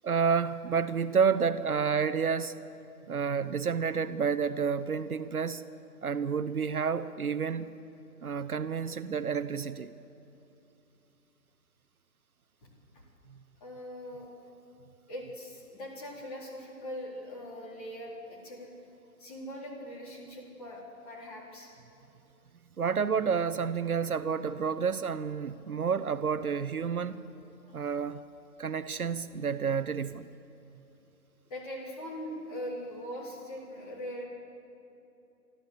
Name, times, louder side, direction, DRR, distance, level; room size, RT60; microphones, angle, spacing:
voice 1, 0.0-2.5 3.1-5.6 6.0-7.7 8.2-9.9 22.8-27.2 27.7-28.2 28.6-30.3, right 6 dB, 60° right, 12 dB, 0.8 m, -29 dB
voice 2, 12.6-13.0 13.6-14.3 15.1-18.7 19.2-21.7 31.5-34.2, equal, 20° left, -4 dB, 4.1 m, -41 dB
25.5 x 13.5 x 8.2 m, 2.8 s
hypercardioid pair, 165°, 48 cm